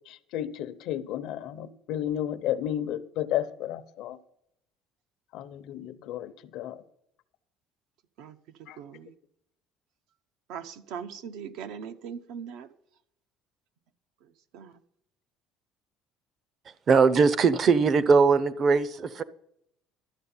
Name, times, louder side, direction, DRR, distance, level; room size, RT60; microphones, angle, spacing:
voice 1, 0.1-4.2 5.3-6.8 8.7-8.8, left 11 dB, 60° left, 12 dB, 0.7 m, -32 dB
voice 2, 8.8-9.1 10.5-12.7 14.5-14.7, right 7 dB, 70° right, 9 dB, 0.8 m, -40 dB
voice 3, 16.9-19.2, right 5 dB, 30° right, 17 dB, 0.6 m, -20 dB
12.5 x 7.9 x 5.6 m, 0.76 s
cardioid pair, 160°, 0 cm